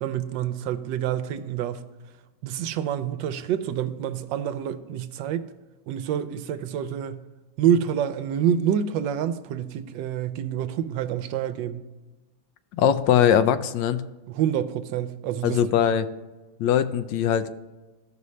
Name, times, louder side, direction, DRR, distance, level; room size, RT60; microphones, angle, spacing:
voice 1, 0.0-1.8 2.4-5.4 5.9-7.2 7.6-11.8 14.3-15.6, right 9 dB, 80° right, 1.2 m, -27 dB
voice 2, 12.7-14.0 15.4-16.1 16.6-17.5, left 9 dB, 80° left, 1.2 m, -21 dB
15.0 x 5.5 x 3.2 m
omnidirectional pair, 2.0 m